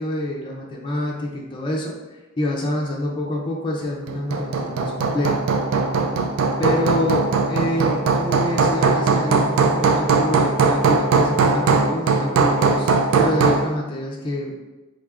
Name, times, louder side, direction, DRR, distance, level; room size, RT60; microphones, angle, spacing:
voice 1, 0.0-5.4 6.6-14.6, left 1 dB, 25° left, -2 dB, 0.4 m, -27 dB
Hammer, 4.1-13.7, right 4 dB, 85° right, 0.3 m, -19 dB
3.6 x 3.4 x 2.3 m, 1.2 s
head